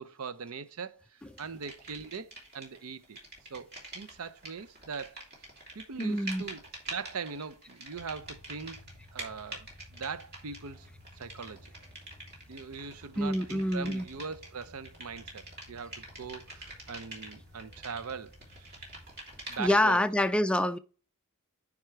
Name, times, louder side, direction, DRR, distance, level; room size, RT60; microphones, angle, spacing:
voice 1, 0.0-3.2 3.5-5.2 5.7-6.6 6.9-8.8 9.1-10.9 11.2-11.7 12.5-18.9 19.5-20.0, right 5 dB, 70° right, 0.6 m, -41 dB
sound 1, 1.4-2.8 3.0-20.1, right 2 dB, 50° right, 3.0 m, -46 dB
voice 2, 6.0-6.4 13.2-14.0 19.6-20.8, left 1 dB, 5° left, 0.3 m, -26 dB
sound 2, 7.9-19.1, left 1 dB, 30° right, 2.9 m, -55 dB
9.6 x 3.6 x 4.5 m
head